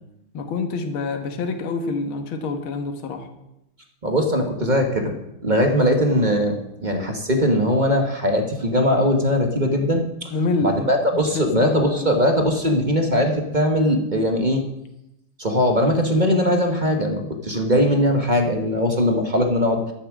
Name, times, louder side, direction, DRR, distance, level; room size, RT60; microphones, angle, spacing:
voice 1, 0.3-3.3 10.3-10.8 11.1-12.2, left 3 dB, 75° left, 6 dB, 2.0 m, -27 dB
voice 2, 4.0-5.1 5.4-10.3 10.6-14.6 15.4-19.8, equal, 30° right, 4 dB, 1.1 m, -20 dB
12.5 x 7.2 x 7.4 m, 0.88 s
omnidirectional pair, 2.3 m